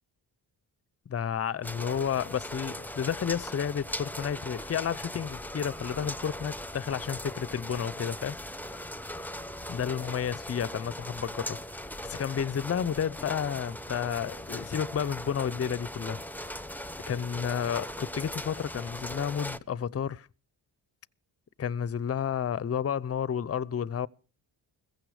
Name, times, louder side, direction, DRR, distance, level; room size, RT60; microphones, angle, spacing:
voice 1, 1.1-8.4 9.7-11.6 12.0-16.2 17.1-20.3 21.6-24.1, left 8 dB, 30° left, 0.7 m, -31 dB
sound 1, 1.6-19.6, left 1 dB, 5° left, 1.0 m, -39 dB
15.5 x 15.5 x 4.9 m
supercardioid pair, 55°, 47 cm